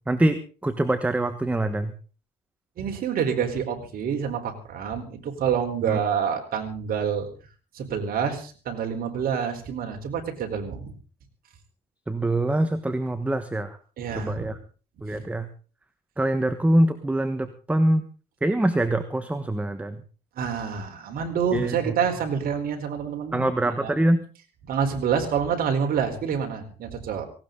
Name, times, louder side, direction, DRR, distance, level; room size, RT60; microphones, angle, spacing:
voice 1, 0.1-1.9 5.9-6.0 12.1-13.8 14.1-14.6 15.0-15.5 16.2-18.0 18.4-20.0 21.5-21.7 23.3-24.2, right 1 dB, 10° right, 10 dB, 1.3 m, -24 dB
voice 2, 2.8-7.3 7.7-10.9 14.0-14.5 15.0-15.3 20.4-23.5 23.8-23.9 24.6-27.2, right 7 dB, 60° right, 4 dB, 4.3 m, -27 dB
18.0 x 17.5 x 3.9 m, 0.37 s
cardioid pair, 110°, 17 cm